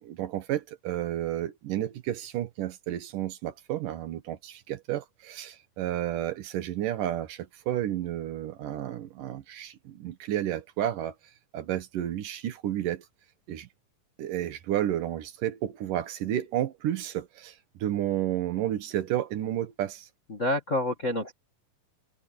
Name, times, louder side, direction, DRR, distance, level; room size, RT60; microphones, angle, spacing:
voice 1, 0.0-11.1 11.5-13.0 13.5-13.7 14.2-20.1, right 12 dB, 75° right, 2.8 m, -31 dB
voice 2, 20.3-21.3, left 1 dB, 35° left, 1.2 m, -28 dB
omnidirectional pair, 4.0 m